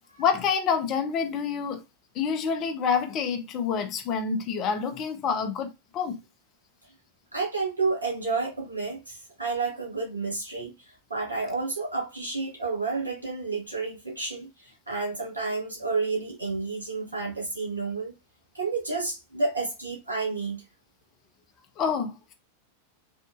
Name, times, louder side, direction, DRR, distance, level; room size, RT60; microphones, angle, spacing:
voice 1, 0.2-1.8 2.1-6.2 21.8-22.3, left 6 dB, 35° left, 0.7 m, -27 dB
voice 2, 7.3-18.1 18.5-20.6, right 3 dB, 80° right, 1.6 m, -30 dB
3.6 x 2.6 x 2.4 m
figure-of-eight pair, 90°, 0 cm